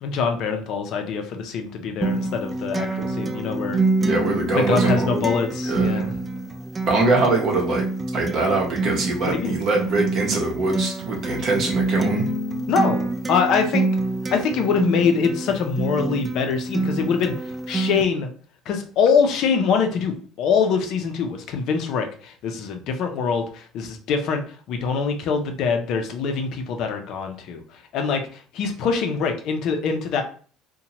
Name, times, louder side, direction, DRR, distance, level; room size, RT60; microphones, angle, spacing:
voice 1, 0.0-3.8 4.5-6.2 9.2-9.5 12.7-13.9 14.3-18.3 18.7-30.2, left 5 dB, 60° left, 5 dB, 0.5 m, -24 dB
Acoustic guitar, 2.0-18.0, right 2 dB, 25° right, 0.3 m, -26 dB
voice 2, 4.0-5.2 5.7-6.0 6.9-7.9 8.1-12.2, right 3 dB, 50° right, -1 dB, 0.7 m, -23 dB
2.7 x 2.1 x 2.9 m, 0.43 s
cardioid pair, 115°, 0 cm